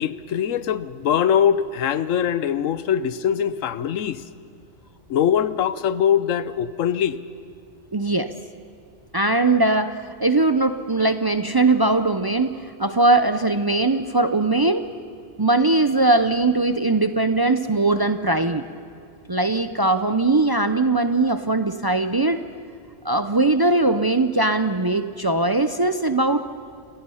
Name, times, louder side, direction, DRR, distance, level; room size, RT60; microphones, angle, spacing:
voice 1, 0.0-4.2 5.1-7.2, left 9 dB, 90° left, 15 dB, 1.1 m, -22 dB
voice 2, 7.9-8.3 9.1-14.9 15.4-18.6 19.3-22.4 23.0-26.4, right 2 dB, 40° right, 10 dB, 0.3 m, -20 dB
29.5 x 16.5 x 5.6 m, 2.4 s
omnidirectional pair, 1.3 m